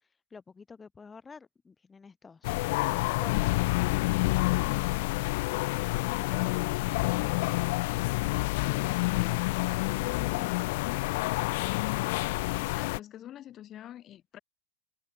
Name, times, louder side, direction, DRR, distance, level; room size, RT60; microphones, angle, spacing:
voice 1, 0.0-2.5 5.8-6.7 8.6-9.5, left 5 dB, 15° left, 3.4 m, -49 dB
sound 1, 2.4-13.0, left 23 dB, 55° left, 0.8 m, -28 dB
voice 2, 12.6-14.4, left 12 dB, 35° left, 3.7 m, -46 dB
figure-of-eight pair, 85°, 0 cm